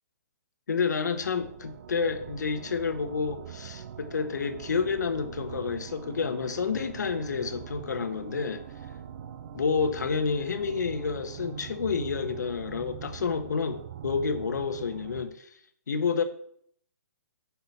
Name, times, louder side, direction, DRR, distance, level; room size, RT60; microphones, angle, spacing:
voice 1, 0.7-8.6 9.5-15.5 15.9-16.2, left 5 dB, 80° left, 1.0 m, -29 dB
sound 1, 0.9-15.2, right 9 dB, 50° right, 0.5 m, -43 dB
5.7 x 4.6 x 5.7 m
hypercardioid pair, 160°, 9 cm